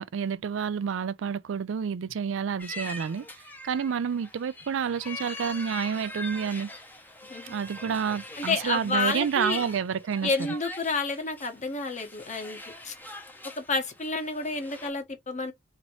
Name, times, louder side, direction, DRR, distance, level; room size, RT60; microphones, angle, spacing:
voice 1, 0.0-3.3 3.6-6.7 7.5-10.3, right 7 dB, 90° right, 0.4 m, -29 dB
sound 1, 2.6-14.9, left 2 dB, 10° left, 0.7 m, -43 dB
voice 2, 8.4-9.7 10.2-12.6 12.8-12.9 13.6-15.5, left 3 dB, 40° left, 1.2 m, -30 dB
4.1 x 2.9 x 3.0 m
head